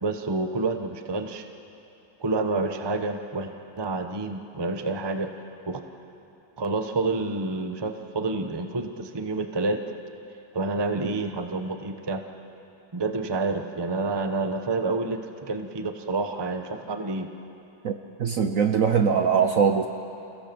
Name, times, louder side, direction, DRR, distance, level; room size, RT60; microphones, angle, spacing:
voice 1, 0.0-1.4 2.2-5.3 5.7-5.8 6.6-9.8 10.5-12.2 12.9-17.3, right 3 dB, 20° right, 6 dB, 0.7 m, -28 dB
voice 2, 18.2-19.9, right 6 dB, 55° right, 6 dB, 1.0 m, -21 dB
29.0 x 16.5 x 6.9 m, 2.8 s
omnidirectional pair, 2.0 m